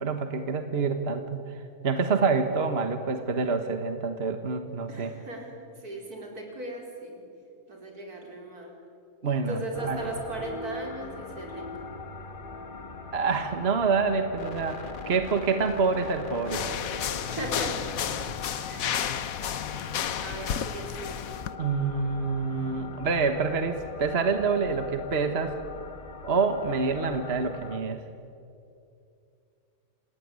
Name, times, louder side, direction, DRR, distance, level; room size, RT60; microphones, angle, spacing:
voice 1, 0.0-5.1 9.2-10.0 13.1-16.6 21.6-25.5 26.2-28.0, right 4 dB, 45° right, 7 dB, 1.6 m, -27 dB
voice 2, 4.9-5.5 5.8-7.2 7.7-8.7 9.5-11.7 17.2-17.8 18.7-19.2 20.2-21.2, right 1 dB, 85° right, 0 dB, 5.1 m, -37 dB
sound 1, 9.7-27.8, left 4 dB, 35° left, 1.6 m, -41 dB
sound 2, 16.5-21.5, left 9 dB, 70° left, 1.3 m, -32 dB
27.5 x 18.0 x 9.6 m, 2.6 s
omnidirectional pair, 1.6 m